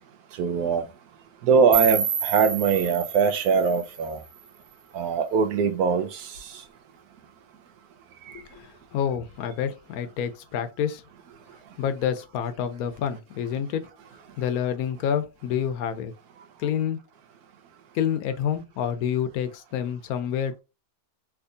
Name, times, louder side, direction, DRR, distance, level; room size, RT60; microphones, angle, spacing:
voice 1, 0.4-0.8 1.4-4.2 4.9-6.3, right 6 dB, 85° right, 1.2 m, -22 dB
sound 1, 1.7-4.7, right 8 dB, 60° right, 0.6 m, -29 dB
voice 2, 8.3-11.0 11.8-13.8 14.4-16.1 16.6-17.0 17.9-20.6, left 9 dB, 75° left, 1.0 m, -28 dB
3.5 x 3.0 x 2.5 m
omnidirectional pair, 1.6 m